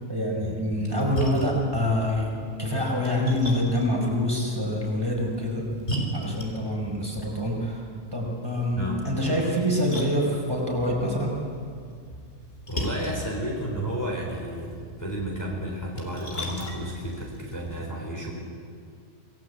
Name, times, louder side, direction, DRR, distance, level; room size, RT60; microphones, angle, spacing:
voice 1, 0.1-2.3 2.6-5.7 6.1-7.8 8.1-11.3, left 1 dB, 20° right, -2 dB, 5.2 m, -26 dB
Splash splatter, 0.7-17.8, equal, 50° left, 4.2 m, -38 dB
voice 2, 12.7-18.3, equal, 15° left, -2 dB, 4.0 m, -32 dB
27.5 x 19.0 x 8.3 m, 2.2 s
omnidirectional pair, 1.3 m